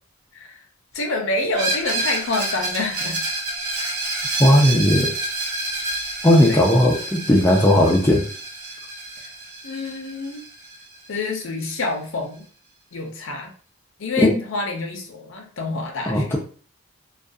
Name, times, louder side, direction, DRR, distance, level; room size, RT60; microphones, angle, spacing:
voice 1, 0.9-3.2 6.5-6.6 9.6-10.5 11.1-12.5 12.9-13.5 14.0-16.4, left 3 dB, 60° left, 2 dB, 0.6 m, -27 dB
Screech, 1.5-11.2, right 2 dB, 85° right, 0.8 m, -29 dB
voice 2, 4.4-5.1 6.2-8.2 14.2-14.4 16.1-16.4, left 1 dB, 10° left, -3 dB, 0.3 m, -16 dB
2.3 x 2.2 x 2.5 m, 0.43 s
head